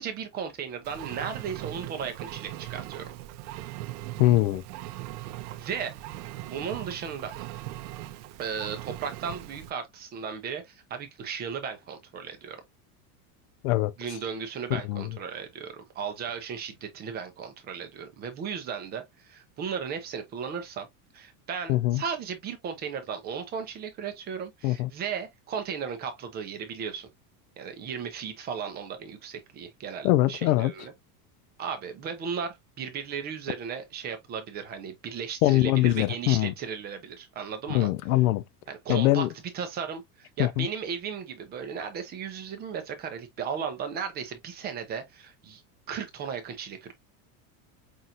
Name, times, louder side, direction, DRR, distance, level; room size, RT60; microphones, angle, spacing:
voice 1, 0.0-3.1 5.5-6.0 6.4-7.5 8.4-12.6 14.0-20.9 21.1-27.1 27.6-30.9 31.6-37.9 38.7-39.3 39.5-45.6 45.9-46.9, right 6 dB, 20° right, 0.5 m, -35 dB
Engine, 0.8-9.7, right 15 dB, 75° right, 0.7 m, -40 dB
voice 2, 4.2-4.6 13.6-13.9 14.9-15.1 21.7-22.0 24.6-24.9 30.0-30.7 35.4-36.5 37.7-38.4 38.9-39.3 40.4-40.7, left 16 dB, 65° left, 0.5 m, -23 dB
5.8 x 2.6 x 2.5 m
supercardioid pair, 160°, 46 cm